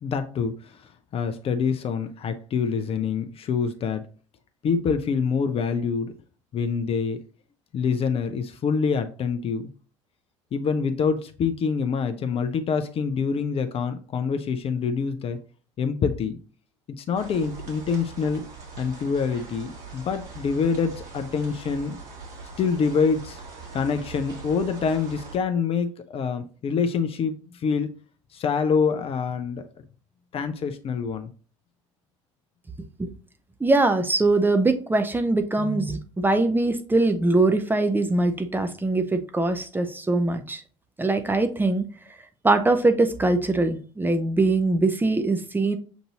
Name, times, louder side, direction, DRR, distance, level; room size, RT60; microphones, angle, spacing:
voice 1, 0.0-4.0 4.6-6.1 6.5-7.2 7.7-9.7 10.5-15.4 15.8-16.4 17.0-18.5 18.8-22.0 22.6-23.4 23.7-27.9 28.3-29.7 30.3-31.3, left 5 dB, 35° left, 8 dB, 0.5 m, -26 dB
sound 1, 17.1-25.4, right 4 dB, 60° right, 1.7 m, -42 dB
voice 2, 33.6-40.6 41.0-41.9 42.4-45.8, right 2 dB, 10° right, 7 dB, 0.7 m, -22 dB
7.0 x 2.6 x 2.8 m, 0.40 s
hypercardioid pair, 65°, 16 cm